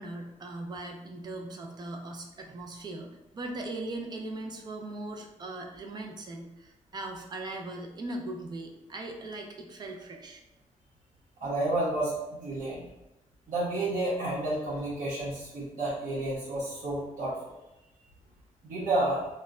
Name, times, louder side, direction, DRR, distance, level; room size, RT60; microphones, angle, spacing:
voice 1, 0.0-10.4, right 2 dB, 30° right, 2 dB, 0.4 m, -39 dB
voice 2, 11.4-12.8 13.5-17.4 18.6-19.3, right 2 dB, 85° right, -8 dB, 0.8 m, -30 dB
2.1 x 2.1 x 3.5 m, 0.96 s
wide cardioid pair, 175°, 13 cm